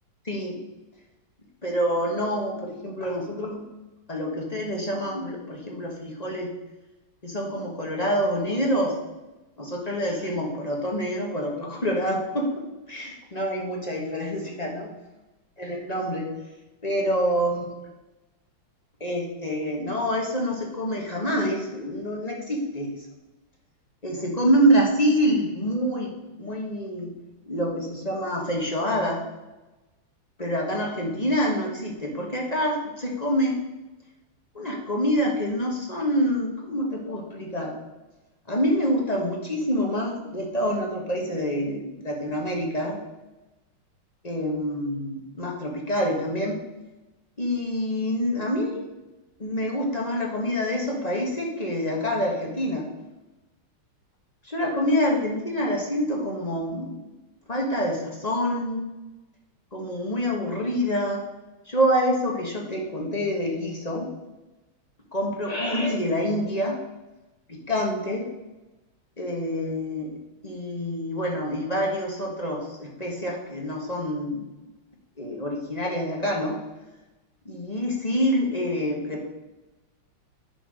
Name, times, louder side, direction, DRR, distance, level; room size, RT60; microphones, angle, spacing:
voice 1, 1.6-3.6 4.1-6.5 7.2-9.0 9.6-12.5 12.9-14.9 15.6-16.3 16.8-17.6 19.0-22.9 24.0-27.1 27.5-29.2 30.4-33.6 34.5-37.8 38.5-43.0 44.2-46.6 47.4-48.9 49.4-52.8 54.4-57.0 57.5-58.9 59.7-61.2 61.7-64.1 65.1-66.8 67.5-68.3 69.2-70.1 70.4-74.5 75.2-76.6 77.4-79.3, equal, 20° left, -1 dB, 1.4 m, -26 dB
9.8 x 4.6 x 6.4 m, 1.0 s
omnidirectional pair, 2.3 m